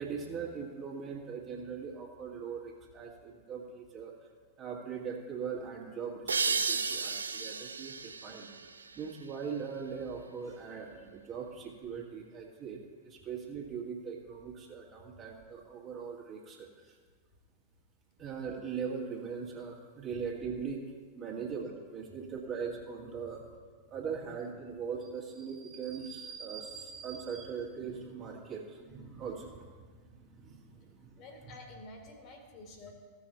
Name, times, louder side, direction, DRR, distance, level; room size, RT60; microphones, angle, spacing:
voice 1, 0.0-4.1 4.6-8.5 8.8-17.0 18.2-20.8 21.1-23.4 23.9-31.5, right 6 dB, 30° right, -1 dB, 2.0 m, -40 dB
sound 1, 6.3-9.7, right 5 dB, 75° right, 0.4 m, -34 dB
voice 2, 31.2-32.9, left 2 dB, 40° left, 3 dB, 1.9 m, -50 dB
15.5 x 6.5 x 4.3 m, 1.5 s
figure-of-eight pair, 90°, 0 cm